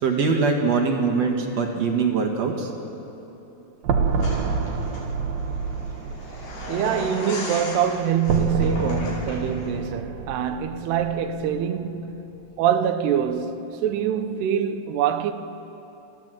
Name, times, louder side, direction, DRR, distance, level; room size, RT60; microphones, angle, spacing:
voice 1, 0.0-2.7, right 4 dB, 50° right, 2.3 m, -22 dB
sound 1, 3.8-11.9, right 4 dB, 70° right, 2.7 m, -28 dB
sound 2, 4.2-9.7, left 2 dB, 80° left, 7.3 m, -37 dB
voice 2, 6.7-12.2 12.6-15.3, right 8 dB, 85° right, 3.0 m, -24 dB
29.5 x 14.5 x 7.7 m
omnidirectional pair, 4.6 m